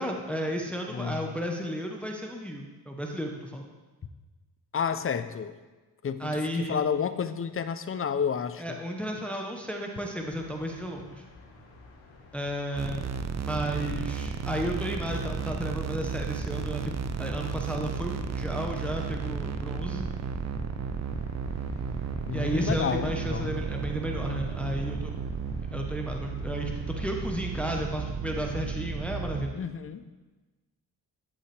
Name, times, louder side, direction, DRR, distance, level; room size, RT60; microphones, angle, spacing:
voice 1, 0.0-3.7 6.2-6.8 8.6-11.2 12.3-13.1 13.4-20.1 22.3-25.2 25.7-29.5, equal, 5° left, 1 dB, 0.9 m, -33 dB
voice 2, 0.9-1.3 4.7-5.5 6.0-8.8 22.3-23.5 29.5-30.1, left 7 dB, 30° left, 11 dB, 0.6 m, -30 dB
sound 1, 10.2-27.8, left 2 dB, 85° left, 1.5 m, -53 dB
sound 2, 12.7-29.5, right 5 dB, 40° right, 0.6 m, -33 dB
11.5 x 5.5 x 3.4 m, 1.2 s
supercardioid pair, 50°, 42 cm